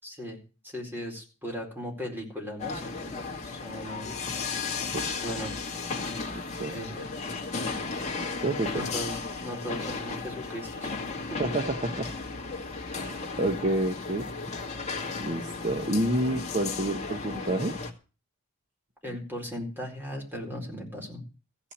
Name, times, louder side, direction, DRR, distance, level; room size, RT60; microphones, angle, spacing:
voice 1, 0.0-4.2 5.2-5.5 6.7-7.0 8.7-10.9 11.2-11.4 19.0-21.2, equal, 10° right, 0 dB, 4.4 m, -38 dB
sound 1, 2.6-17.9, left 4 dB, 30° left, 2.1 m, -35 dB
voice 2, 4.9-5.3 6.3-6.7 8.3-8.8 11.4-12.1 12.9-14.3 15.2-17.8, right 1 dB, 35° right, 5 dB, 1.1 m, -29 dB
15.0 x 5.9 x 9.8 m, 0.34 s
head